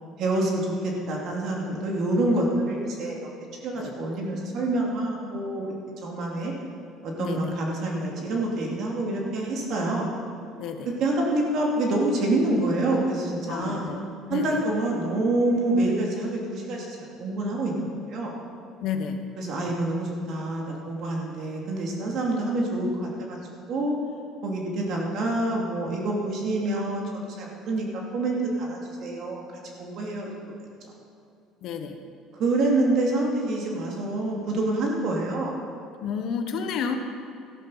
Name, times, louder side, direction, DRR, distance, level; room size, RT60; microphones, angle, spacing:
voice 1, 0.2-3.1 3.6-6.5 7.0-10.1 10.9-13.9 14.3-18.3 19.4-23.4 23.7-23.9 24.4-29.4 29.8-30.3 30.8-30.9 32.4-35.5, right 2 dB, 55° right, -1 dB, 2.6 m, -27 dB
voice 2, 7.2-7.5 10.6-10.9 13.5-14.0 14.3-14.6 18.8-19.3 31.6-32.0 36.0-36.9, left 7 dB, 60° left, 6 dB, 1.2 m, -31 dB
13.5 x 11.5 x 5.7 m, 2.5 s
cardioid pair, 130°, 0 cm